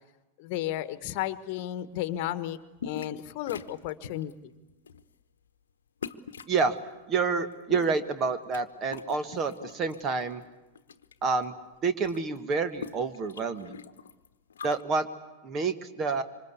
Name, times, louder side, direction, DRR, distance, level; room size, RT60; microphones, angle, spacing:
voice 1, 0.4-2.6 2.8-4.3, left 13 dB, 45° left, 13 dB, 1.3 m, -33 dB
sound 1, 2.8-3.2 3.5-4.3 4.8-5.1 6.0-6.6 7.5-8.6 8.9-10.0 10.4-11.1 11.4-11.5 11.7-14.8, left 6 dB, 65° left, 1.1 m, -43 dB
voice 2, 6.5-6.8 7.1-10.4 11.2-11.5 11.8-13.8 14.6-15.1 15.4-16.2, right 4 dB, 30° right, 11 dB, 1.5 m, -28 dB
26.5 x 25.0 x 8.3 m, 1.1 s
figure-of-eight pair, 90°, 0 cm